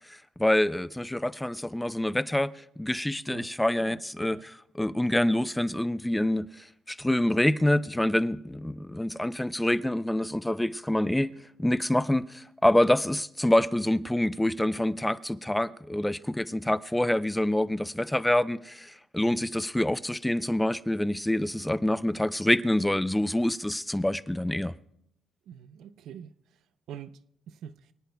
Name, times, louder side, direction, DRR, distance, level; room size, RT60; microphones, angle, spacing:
voice 1, 0.1-11.3 11.6-24.7, left 1 dB, 5° left, 0.5 m, -26 dB
voice 2, 25.5-26.3 26.9-27.2 27.5-27.9, right 9 dB, 80° right, 0.6 m, -44 dB
25.5 x 18.5 x 2.3 m
cardioid pair, 90°, 0 cm